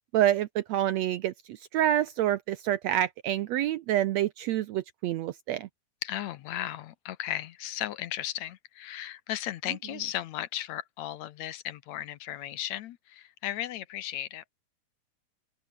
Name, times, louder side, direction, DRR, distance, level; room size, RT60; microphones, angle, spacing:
voice 1, 0.1-5.7, right 12 dB, 75° right, 1.7 m, -27 dB
voice 2, 6.0-14.4, left 12 dB, 70° left, 1.9 m, -35 dB
omnidirectional pair, 3.7 m